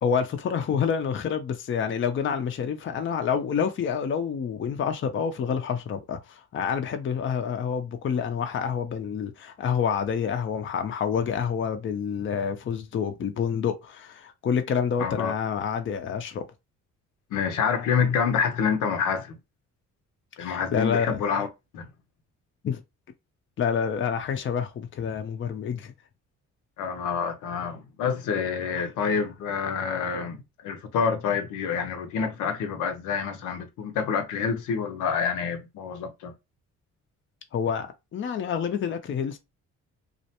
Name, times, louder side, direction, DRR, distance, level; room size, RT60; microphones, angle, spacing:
voice 1, 0.0-16.5 20.4-21.2 22.6-22.8 23.6-25.9 28.7-28.9 37.5-39.4, left 7 dB, 40° left, 0.5 m, -28 dB
voice 2, 15.0-15.3 17.3-19.4 20.4-21.5 21.7-21.9 26.8-36.3, left 6 dB, 90° left, 0.7 m, -27 dB
2.5 x 2.1 x 2.8 m
cardioid pair, 90°, 30 cm